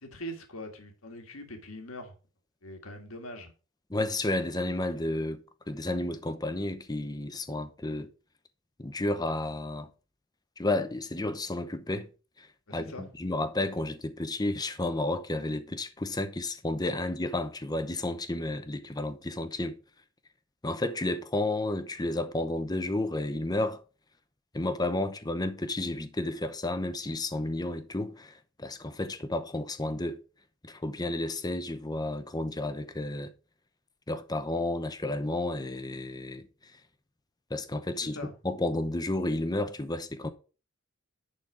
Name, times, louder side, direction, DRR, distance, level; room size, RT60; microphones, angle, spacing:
voice 1, 0.0-2.1 2.6-3.5 12.7-13.1 38.1-38.3, equal, 75° left, 1.7 m, -42 dB
voice 2, 3.9-5.4 5.7-8.1 8.8-9.9 10.6-12.1 12.4-19.7 20.6-23.8 24.5-30.2 30.6-33.3 34.1-36.5 37.5-40.3, left 2 dB, 20° left, 0.8 m, -32 dB
10.5 x 4.2 x 4.9 m
head